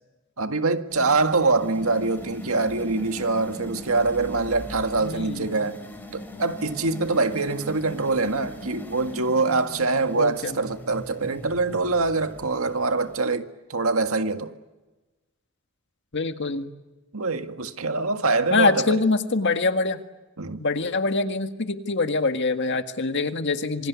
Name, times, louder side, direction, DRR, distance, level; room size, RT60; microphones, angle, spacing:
voice 1, 0.4-5.8 6.1-14.5 17.1-19.0 20.4-20.7, right 3 dB, 85° right, 1.8 m, -24 dB
sound 1, 0.9-13.2, left 1 dB, 10° left, 5.1 m, -40 dB
voice 2, 5.0-5.7 10.2-10.6 16.1-16.7 18.5-20.0 20.6-23.9, left 3 dB, 55° left, 1.8 m, -24 dB
27.0 x 24.5 x 8.3 m
head